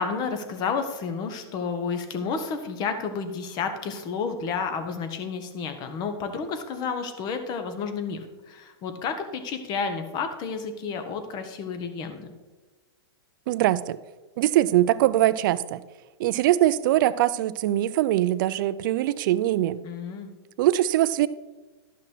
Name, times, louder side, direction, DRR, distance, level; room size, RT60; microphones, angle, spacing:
voice 1, 0.0-12.3 19.8-20.3, left 5 dB, 30° left, 8 dB, 1.2 m, -31 dB
voice 2, 13.5-14.0 14.4-15.8 16.2-19.8 20.6-21.3, right 14 dB, 50° right, 16 dB, 0.5 m, -22 dB
12.0 x 5.8 x 4.5 m, 1.2 s
hypercardioid pair, 140°, 14 cm